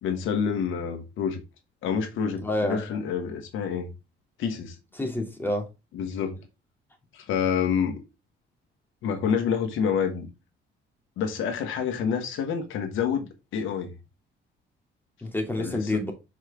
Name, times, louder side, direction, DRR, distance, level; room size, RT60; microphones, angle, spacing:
voice 1, 0.0-1.4 1.8-3.9 4.4-4.8 5.9-6.4 7.1-8.0 9.0-10.3 11.2-13.9 15.6-16.0, left 7 dB, 85° left, 1.3 m, -28 dB
voice 2, 2.4-2.8 5.0-5.7 15.2-16.1, left 1 dB, 10° left, 2.5 m, -28 dB
6.4 x 4.9 x 3.5 m
cardioid pair, 90°, 20 cm